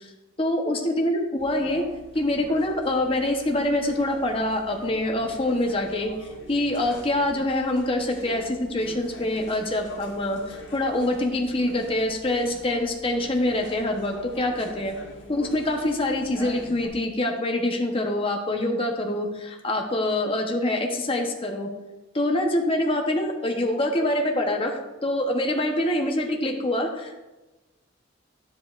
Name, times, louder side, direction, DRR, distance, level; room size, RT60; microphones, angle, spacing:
voice 1, 0.4-1.8 2.1-6.1 6.5-15.0 15.3-21.7 22.1-27.2, left 1 dB, 30° left, 2 dB, 0.8 m, -25 dB
sound 1, 1.4-16.9, equal, 65° left, 1.4 m, -44 dB
9.7 x 7.4 x 2.4 m, 1.1 s
head